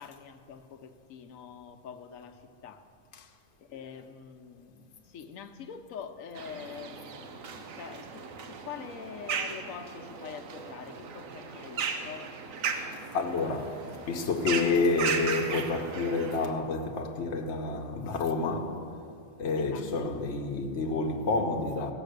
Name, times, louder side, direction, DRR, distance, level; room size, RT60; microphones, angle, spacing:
voice 1, 0.0-2.8 3.6-12.3 19.6-20.1, left 7 dB, 85° left, 1.2 m, -45 dB
sound 1, 6.4-16.5, right 5 dB, 85° right, 1.2 m, -36 dB
voice 2, 12.7-18.9 19.4-21.9, left 3 dB, 60° left, 1.1 m, -29 dB
16.0 x 7.1 x 6.6 m
omnidirectional pair, 1.4 m